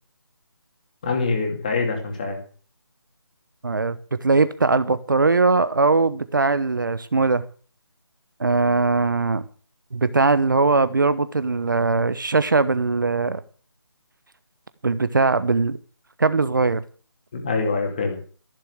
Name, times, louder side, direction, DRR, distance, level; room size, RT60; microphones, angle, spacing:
voice 1, 1.0-2.4 17.3-18.2, left 4 dB, 20° left, 3 dB, 2.6 m, -24 dB
voice 2, 3.6-7.4 8.4-9.4 9.9-13.4 14.8-15.8 16.2-16.8, right 3 dB, 50° right, 14 dB, 1.0 m, -20 dB
15.0 x 7.2 x 8.0 m, 0.41 s
figure-of-eight pair, 175°, 14 cm